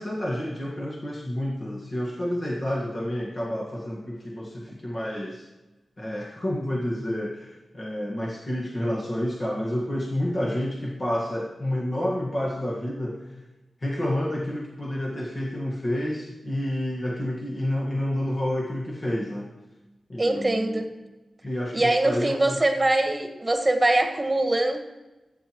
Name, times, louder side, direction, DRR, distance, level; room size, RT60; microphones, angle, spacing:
voice 1, 0.0-5.5 6.0-13.4 13.8-19.6 20.1-20.9 21.4-22.6, left 1 dB, 35° left, -2 dB, 1.7 m, -29 dB
voice 2, 20.2-20.9 21.7-24.8, right 2 dB, 20° right, 5 dB, 1.6 m, -23 dB
26.5 x 9.0 x 3.1 m, 1.1 s
wide cardioid pair, 100°, 0 cm